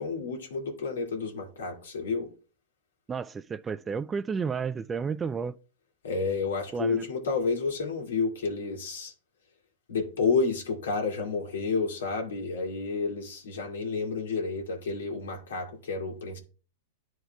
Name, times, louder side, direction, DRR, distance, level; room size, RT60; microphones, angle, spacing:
voice 1, 0.0-2.3 6.0-9.1 9.9-16.4, left 4 dB, 85° left, 2.1 m, -30 dB
voice 2, 3.1-5.5 6.7-7.1, right 5 dB, 15° right, 0.3 m, -31 dB
11.5 x 4.6 x 2.3 m
hypercardioid pair, 125°, 0 cm